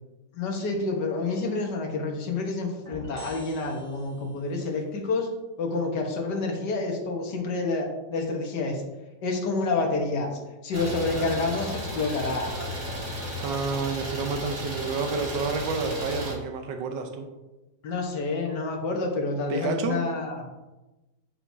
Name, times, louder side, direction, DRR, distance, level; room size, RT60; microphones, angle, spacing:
voice 1, 0.3-5.3 5.6-8.8 9.2-12.5 17.8-20.5, left 3 dB, 70° left, 1 dB, 1.7 m, -28 dB
sound 1, 2.8-4.5, right 1 dB, 40° right, 1.9 m, -45 dB
Idling, 10.7-16.3, equal, 55° right, 2.4 m, -34 dB
voice 2, 13.4-17.3 19.5-20.0, right 4 dB, 80° right, 5 dB, 1.4 m, -29 dB
9.6 x 4.6 x 2.7 m, 1.1 s
omnidirectional pair, 2.0 m